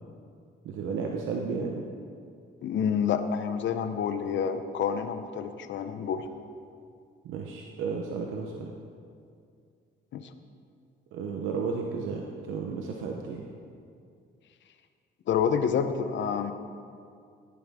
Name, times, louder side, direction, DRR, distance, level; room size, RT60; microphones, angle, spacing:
voice 1, 0.6-1.9 7.2-8.7 11.1-13.5, right 5 dB, 90° right, 1 dB, 0.9 m, -33 dB
voice 2, 2.6-6.2 10.1-10.3 15.3-16.5, left 7 dB, 70° left, 9 dB, 0.8 m, -28 dB
17.0 x 9.4 x 3.6 m, 2.3 s
cardioid pair, 90°, 20 cm